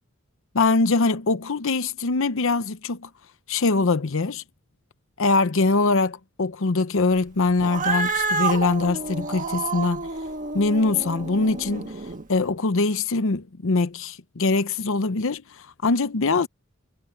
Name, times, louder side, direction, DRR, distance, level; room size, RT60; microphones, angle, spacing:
voice 1, 0.5-3.1 3.5-4.4 5.2-10.1 10.5-11.9 12.3-16.5, left 3 dB, 65° left, 0.8 m, -23 dB
Cat, 7.6-12.2, right 4 dB, 40° right, 1.6 m, -29 dB
head